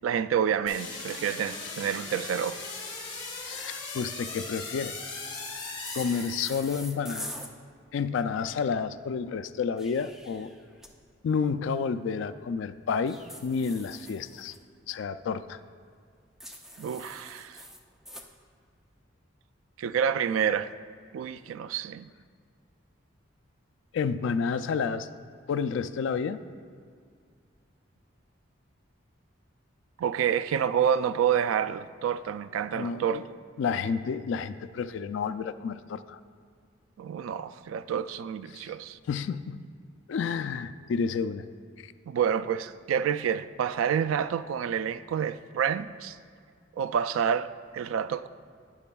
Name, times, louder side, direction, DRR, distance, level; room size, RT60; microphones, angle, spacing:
voice 1, 0.0-2.6 16.8-17.6 19.8-20.7 21.1-22.1 30.0-33.2 37.0-39.0 42.1-46.2 46.8-48.3, right 8 dB, 85° right, 0.3 m, -28 dB
sound 1, 0.7-6.9, left 3 dB, 25° left, 1.4 m, -39 dB
voice 2, 3.5-4.9 5.9-7.3 7.9-10.5 11.2-14.6 14.9-15.6 23.9-25.1 25.5-26.4 32.7-33.2 33.6-36.2 38.5-38.7 39.1-39.6 40.1-41.5, left 5 dB, 65° left, 0.3 m, -30 dB
sound 2, 5.9-7.5 9.6-10.9 13.1-14.6 16.4-18.3, equal, ahead, 0.5 m, -44 dB
12.0 x 9.7 x 2.3 m
head